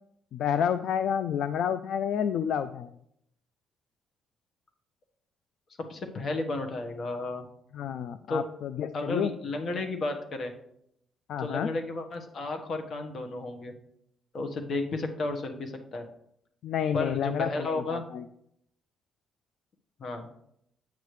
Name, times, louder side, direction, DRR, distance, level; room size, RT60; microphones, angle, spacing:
voice 1, 0.3-2.9 7.7-9.3 11.3-11.7 16.6-18.3, left 8 dB, 75° left, 12 dB, 0.3 m, -29 dB
voice 2, 5.9-7.5 8.3-8.4 8.9-10.5 11.4-13.7 14.3-16.1 16.9-18.0 20.0-20.3, left 2 dB, 55° left, 5 dB, 1.3 m, -33 dB
9.1 x 6.8 x 3.2 m, 0.73 s
cardioid pair, 90°, 0 cm